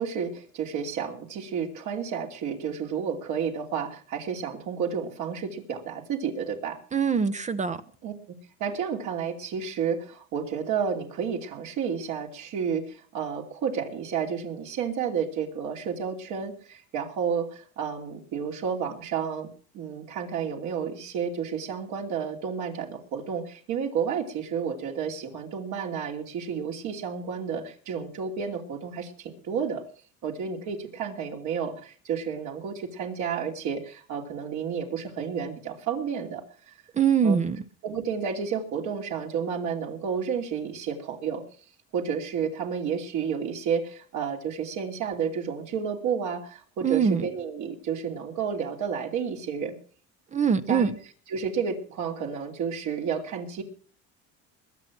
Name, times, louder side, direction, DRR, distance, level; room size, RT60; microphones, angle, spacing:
voice 1, 0.0-6.8 8.0-8.1 8.6-19.5 19.7-29.8 30.2-36.7 37.2-37.3 37.8-41.4 41.9-49.7 50.7-50.9 51.3-53.6, right 7 dB, 60° right, 2 dB, 2.9 m, -31 dB
voice 2, 6.9-7.8 36.9-37.6 46.8-47.3 50.3-51.0, right 6 dB, 20° right, 11 dB, 0.7 m, -23 dB
21.0 x 7.6 x 6.0 m, 0.43 s
cardioid pair, 140°, 33 cm